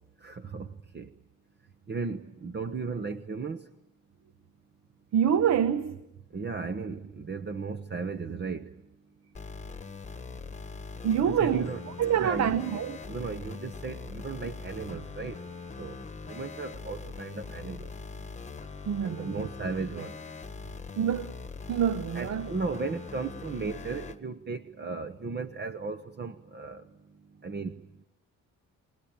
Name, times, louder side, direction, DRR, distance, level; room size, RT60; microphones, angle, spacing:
voice 1, 0.2-0.7 0.9-1.1 1.9-3.6 6.3-8.7 11.2-11.8 12.2-12.6 13.1-15.4 15.8-15.9 16.3-17.9 19.2-20.2 22.1-26.8 27.4-27.7, right 4 dB, 35° right, 1.1 m, -35 dB
voice 2, 5.1-6.0 11.0-11.7 12.0-13.0 18.8-19.5 21.0-21.4 21.7-22.5, right 8 dB, 60° right, 1.0 m, -26 dB
sound 1, 9.3-24.2, left 4 dB, 25° left, 1.3 m, -42 dB
26.5 x 19.0 x 8.8 m
cardioid pair, 90°, 30 cm